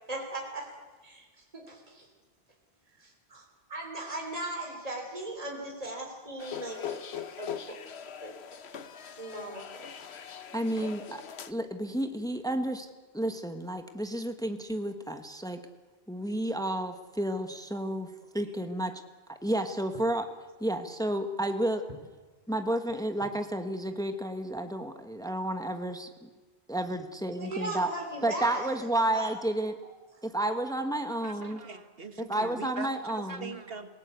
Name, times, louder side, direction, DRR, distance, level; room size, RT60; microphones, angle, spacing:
voice 1, 0.1-0.7 1.0-2.1 3.0-3.4 3.7-7.8 8.2-8.3 9.0-10.1 27.4-28.8 29.1-29.3, right 1 dB, 35° right, 1 dB, 3.4 m, -38 dB
sound 1, 6.4-11.5, left 8 dB, 85° left, 1.2 m, -41 dB
voice 2, 10.3-11.2 11.5-12.9 13.1-15.6 16.1-19.0 19.3-20.2 20.6-21.9 22.5-26.3 26.7-27.9 28.2-29.7 30.2-31.6 32.2-33.5, right 1 dB, 5° left, 7 dB, 1.3 m, -31 dB
voice 3, 31.1-33.9, right 4 dB, 65° right, 9 dB, 1.8 m, -42 dB
27.5 x 18.0 x 8.2 m, 1.3 s
omnidirectional pair, 1.1 m